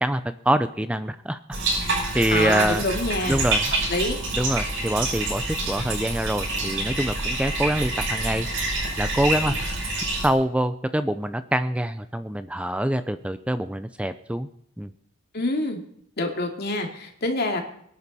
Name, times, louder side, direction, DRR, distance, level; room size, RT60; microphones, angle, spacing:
voice 1, 0.0-1.4 2.1-2.8 3.3-3.6 4.3-14.5 14.8-14.9, right 1 dB, 5° right, 11 dB, 0.5 m, -25 dB
Bathtub (filling or washing), 1.5-10.3, right 2 dB, 70° right, 7.4 m, -27 dB
voice 2, 2.3-3.4 3.9-4.2 15.3-15.8 16.2-17.6, left 2 dB, 55° left, 3 dB, 2.6 m, -26 dB
24.0 x 10.5 x 4.2 m, 0.71 s
head